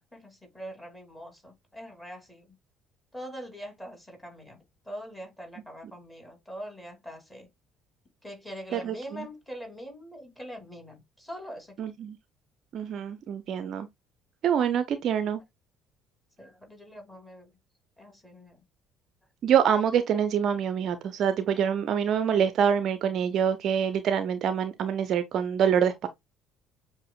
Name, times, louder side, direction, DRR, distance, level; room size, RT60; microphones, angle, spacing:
voice 1, 0.1-2.5 3.1-4.6 4.8-7.5 8.2-11.8 16.4-17.5 18.0-18.6, equal, 10° left, 2.5 m, -43 dB
voice 2, 8.7-9.3 11.8-12.2 12.7-13.9 14.4-15.4 19.4-26.1, right 8 dB, 55° right, 0.4 m, -26 dB
7.4 x 2.5 x 2.3 m
figure-of-eight pair, 55°, 0 cm